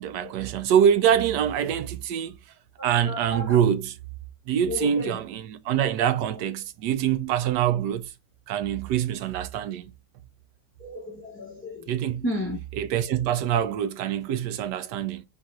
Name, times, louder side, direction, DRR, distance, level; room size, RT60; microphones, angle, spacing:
voice 1, 0.0-2.4 2.8-4.0 4.5-8.1 8.5-9.9 11.9-12.2 12.7-15.2, right 9 dB, 75° right, 1.2 m, -25 dB
voice 2, 3.0-3.6 4.7-5.2 10.8-11.9 12.2-12.6, left 1 dB, 20° left, 0.4 m, -32 dB
4.0 x 2.5 x 4.4 m
omnidirectional pair, 1.9 m